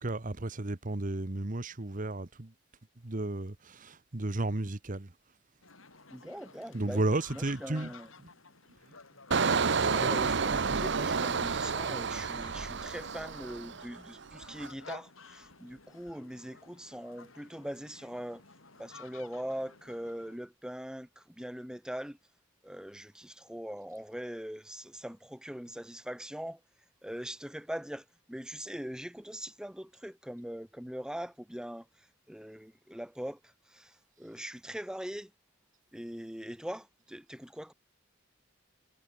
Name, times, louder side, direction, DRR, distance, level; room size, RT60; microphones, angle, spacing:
voice 1, 0.0-2.5 3.0-5.1 6.7-7.9, right 2 dB, 40° right, 1.2 m, -33 dB
sound 1, 5.6-20.4, left 4 dB, 80° left, 7.1 m, -54 dB
voice 2, 6.1-7.0 7.3-8.1 9.9-18.4 18.8-22.2 22.6-26.6 27.0-35.3 35.9-37.7, equal, 5° right, 1.2 m, -41 dB
Engine, 9.3-14.0 14.3-14.7, right 5 dB, 60° right, 0.9 m, -30 dB
head